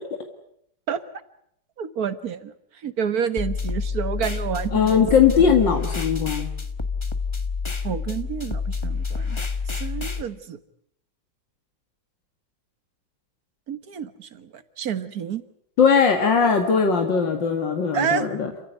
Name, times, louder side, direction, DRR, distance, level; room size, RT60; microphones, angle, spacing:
voice 1, 1.8-5.1 5.4-5.5 7.8-9.4 9.7-10.6 13.7-15.4 17.9-18.3, right 7 dB, 55° right, 12 dB, 1.8 m, -29 dB
sound 1, 3.4-10.2, left 4 dB, 20° left, 1.1 m, -28 dB
voice 2, 4.7-6.5 15.8-18.5, left 6 dB, 85° left, 4 dB, 2.7 m, -19 dB
28.0 x 16.0 x 9.4 m, 0.72 s
omnidirectional pair, 1.9 m